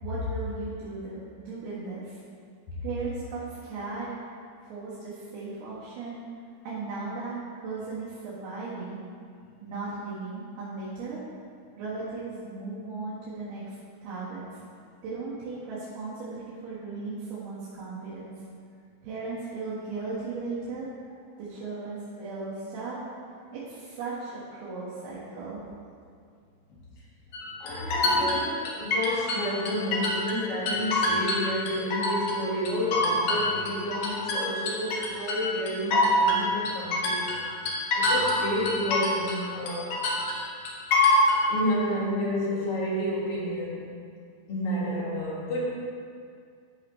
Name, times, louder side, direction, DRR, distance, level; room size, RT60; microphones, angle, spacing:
voice 1, 0.0-2.2 2.8-4.1 4.7-6.2 6.7-9.0 9.6-11.2 11.8-13.8 14.0-14.4 15.0-18.3 19.0-20.9 21.4-23.0 23.5-25.6, right 3 dB, 80° right, -10 dB, 3.6 m, -36 dB
sound 1, 27.3-30.4 30.7-32.4 32.7-39.4 39.7-41.4, left 1 dB, 70° left, 1.6 m, -25 dB
voice 2, 27.6-37.5 37.9-40.0 41.5-43.8 44.5-45.7, equal, 50° left, -7 dB, 2.1 m, -30 dB
14.0 x 4.9 x 3.2 m, 2.2 s
omnidirectional pair, 4.5 m